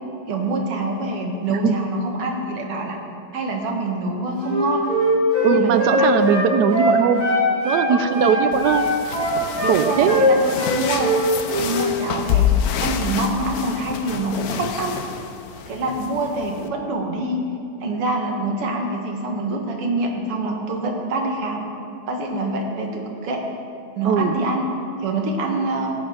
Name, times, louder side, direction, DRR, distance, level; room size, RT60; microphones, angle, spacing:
voice 1, 0.3-3.0 3.3-4.9 5.4-6.2 7.9-8.5 9.6-11.1 11.6-12.5 12.8-15.0 15.7-17.4 17.8-21.7 22.1-23.4 24.0-24.6 25.0-25.9, right 2 dB, 85° right, 1 dB, 2.5 m, -25 dB
Wind instrument woodwind instrument, 4.4-7.9 8.1-9.8 10.0-10.3 10.6-11.2 11.5-11.7, equal, 45° right, 3.9 m, -21 dB
voice 2, 5.4-7.2 7.6-8.9 9.7-10.2 24.0-24.4, right 7 dB, 70° right, 10 dB, 1.0 m, -19 dB
sound 1, 8.5-16.7, left 9 dB, 75° left, 0.8 m, -27 dB
16.5 x 9.5 x 5.1 m, 2.5 s
omnidirectional pair, 2.4 m